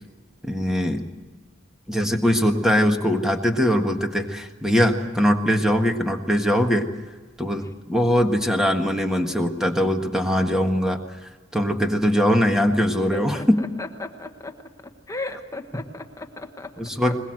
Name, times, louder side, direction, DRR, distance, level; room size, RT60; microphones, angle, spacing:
voice 1, 0.4-1.1 1.9-6.9 7.4-11.0 11.5-13.7 16.8-17.2, equal, 5° right, 4 dB, 1.6 m, -21 dB
voice 2, 13.1-14.5 15.1-16.7, left 2 dB, 15° left, 6 dB, 1.1 m, -36 dB
21.5 x 21.0 x 7.7 m, 1.3 s
head